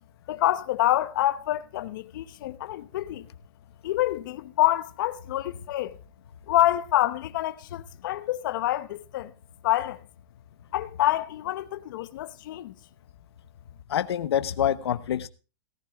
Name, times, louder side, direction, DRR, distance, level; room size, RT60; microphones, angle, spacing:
voice 1, 0.3-3.3 3.8-6.0 6.5-9.3 9.6-10.0 10.7-12.7, left 14 dB, 55° left, 0.9 m, -27 dB
voice 2, 13.9-15.3, left 10 dB, 85° left, 0.9 m, -26 dB
17.5 x 15.5 x 2.4 m
supercardioid pair, 165°, 13 cm